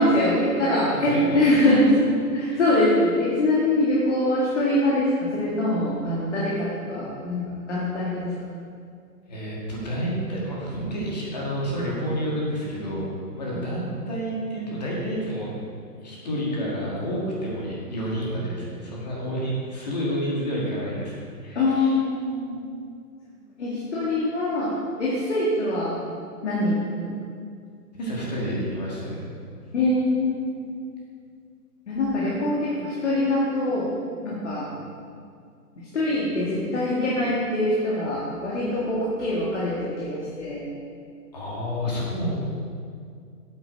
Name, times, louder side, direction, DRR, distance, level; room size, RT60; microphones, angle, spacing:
voice 1, 0.0-1.8 2.3-8.3 21.6-22.6 23.6-24.7 25.0-26.0 26.4-27.1 29.7-30.6 31.9-33.9 34.2-34.7 35.9-40.7, left 1 dB, 45° left, -6 dB, 1.9 m, -23 dB
voice 2, 0.9-1.5 2.5-2.6 9.3-15.5 16.0-21.1 21.4-22.0 27.9-29.2 41.3-42.4, equal, 25° left, -5 dB, 1.7 m, -29 dB
8.5 x 8.2 x 4.7 m, 2.3 s
hypercardioid pair, 175°, 48 cm